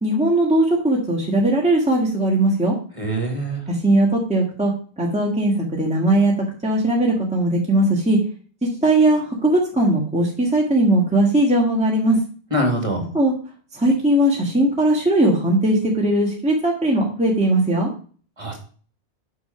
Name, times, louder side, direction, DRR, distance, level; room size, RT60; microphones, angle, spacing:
voice 1, 0.0-2.7 3.7-4.7 5.0-6.3 6.6-8.2 8.6-12.2 13.1-13.3 13.7-17.9, right 1 dB, 5° right, -2 dB, 1.6 m, -19 dB
voice 2, 3.0-3.6 12.5-13.1 18.4-18.6, right 1 dB, 25° right, 3 dB, 2.3 m, -23 dB
8.4 x 5.5 x 5.8 m, 0.42 s
omnidirectional pair, 1.2 m